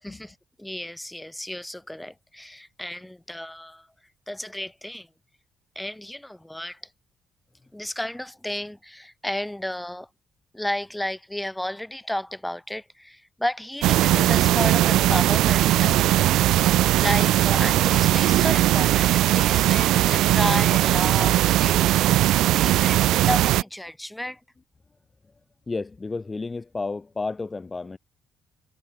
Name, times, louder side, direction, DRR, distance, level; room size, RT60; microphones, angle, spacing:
voice 1, 0.0-3.9 4.3-5.1 5.8-6.8 7.7-10.1 10.5-21.4 21.6-21.9 22.2-24.4, left 1 dB, 5° left, 3.8 m, -32 dB
sound 1, 13.8-23.6, right 14 dB, 85° right, 0.5 m, -19 dB
voice 2, 25.7-28.0, left 3 dB, 25° left, 2.1 m, -31 dB
cardioid pair, 90°, 0 cm